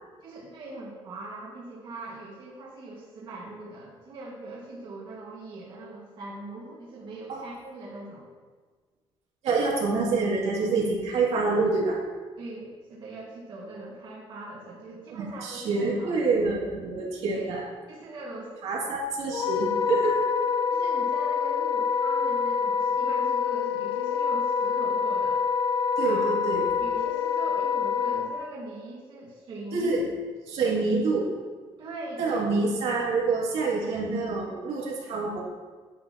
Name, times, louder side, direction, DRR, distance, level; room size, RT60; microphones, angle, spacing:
voice 1, 0.2-8.3 12.4-16.1 17.3-17.5 17.9-18.5 20.7-25.4 26.0-26.4 26.8-29.9 31.8-32.4, right 2 dB, 45° right, -5 dB, 1.8 m, -41 dB
voice 2, 9.4-12.0 15.1-17.6 18.6-20.2 26.0-26.6 29.7-30.0 30.5-31.3 32.2-35.4, right 3 dB, 85° right, -5 dB, 2.4 m, -26 dB
Wind instrument woodwind instrument, 19.3-28.3, left 6 dB, 55° left, 0.5 m, -26 dB
9.5 x 9.5 x 2.9 m, 1.4 s
cardioid pair, 170°, 11 cm